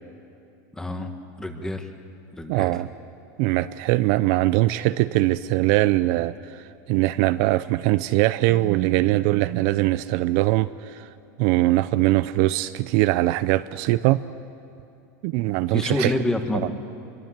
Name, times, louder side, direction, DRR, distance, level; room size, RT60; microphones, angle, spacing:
voice 1, 0.7-1.1 1.4-1.9 2.3-2.7 15.7-16.7, left 1 dB, 5° left, 6 dB, 1.6 m, -27 dB
voice 2, 2.5-2.9 3.4-6.6 6.9-11.1 11.4-14.2 15.2-16.1, right 17 dB, 50° right, 14 dB, 0.5 m, -21 dB
26.0 x 22.5 x 7.4 m, 2.6 s
supercardioid pair, 155°, 10 cm